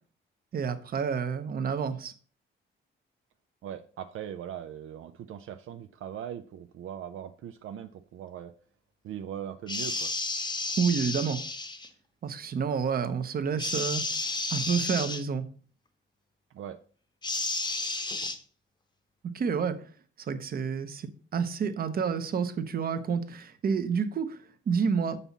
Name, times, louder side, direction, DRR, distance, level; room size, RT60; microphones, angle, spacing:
voice 1, 0.5-2.1 10.8-11.4 12.2-14.1 14.5-15.5 19.2-19.8 20.2-24.4 24.7-25.2, right 6 dB, 45° right, 10 dB, 0.8 m, -29 dB
voice 2, 3.6-8.5 9.0-10.1 16.5-16.8, right 9 dB, 75° right, 8 dB, 0.5 m, -40 dB
sound 1, 9.7-11.9 13.6-15.2 17.2-18.4, left 3 dB, 20° left, 0.9 m, -32 dB
7.1 x 5.5 x 4.1 m, 0.43 s
cardioid pair, 125°, 21 cm